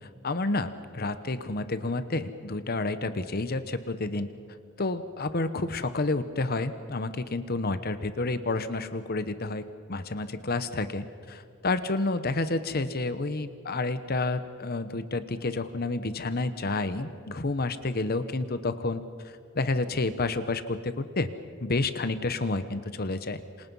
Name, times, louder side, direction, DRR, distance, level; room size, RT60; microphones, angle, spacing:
voice 1, 0.0-4.3 4.8-21.3 21.6-23.7, left 2 dB, 45° left, 12 dB, 0.9 m, -30 dB
28.5 x 26.5 x 5.6 m, 2.2 s
head